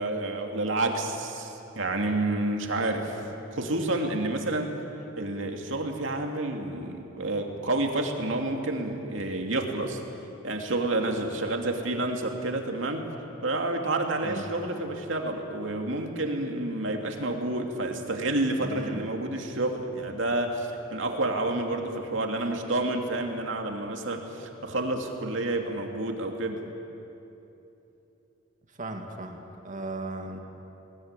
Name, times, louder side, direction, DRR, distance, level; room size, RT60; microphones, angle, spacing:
voice 1, 0.0-4.7 5.2-10.0 10.4-13.1 13.4-26.6, right 2 dB, 65° right, 3 dB, 2.6 m, -29 dB
voice 2, 18.6-19.1 28.8-30.4, right 2 dB, 40° right, 3 dB, 2.2 m, -37 dB
20.5 x 20.0 x 9.8 m, 3.0 s
head